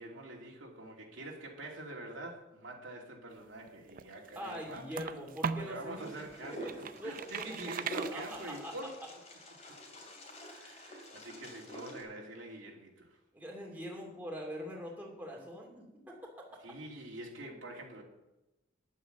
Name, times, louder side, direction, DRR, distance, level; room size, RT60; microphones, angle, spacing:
voice 1, 0.0-4.9 5.5-6.7 7.0-8.9 10.5-13.2 16.6-18.0, right 1 dB, 65° right, -1 dB, 2.6 m, -45 dB
sound 1, 3.7-5.8 6.3-8.8, right 6 dB, 45° right, 0.5 m, -39 dB
voice 2, 4.3-6.1 6.5-7.6 8.0-8.7 13.3-16.3, equal, 10° right, -2 dB, 2.7 m, -43 dB
Wind, 6.0-12.0, right 1 dB, 35° left, 2.5 m, -47 dB
11.0 x 8.4 x 6.6 m, 0.93 s
head